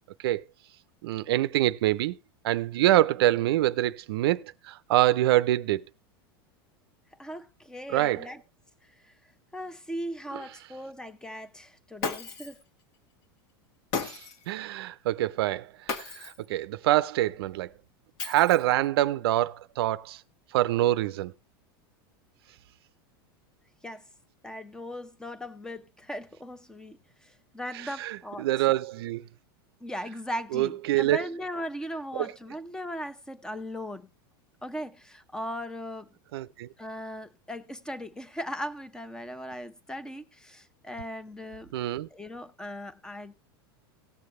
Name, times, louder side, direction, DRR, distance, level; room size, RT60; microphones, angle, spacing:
voice 1, 1.0-2.2 2.4-5.8 7.9-8.3 10.3-10.4 14.0-14.2 14.5-17.7 18.2-20.2 20.5-21.3 27.7-29.2 30.5-31.2 32.1-32.3 36.3-36.7 41.7-42.1, right 15 dB, 75° right, 0.6 m, -25 dB
voice 2, 7.2-8.4 9.0-9.1 9.5-12.6 23.8-24.0 24.4-28.5 29.8-34.1 34.6-36.1 36.8-41.7 42.1-43.3, equal, 5° left, 0.9 m, -38 dB
Shatter, 12.0-12.6 13.9-14.5 15.9-16.5 18.2-18.8, left 5 dB, 55° left, 1.8 m, -34 dB
18.0 x 6.6 x 3.2 m
supercardioid pair, 120°, 13 cm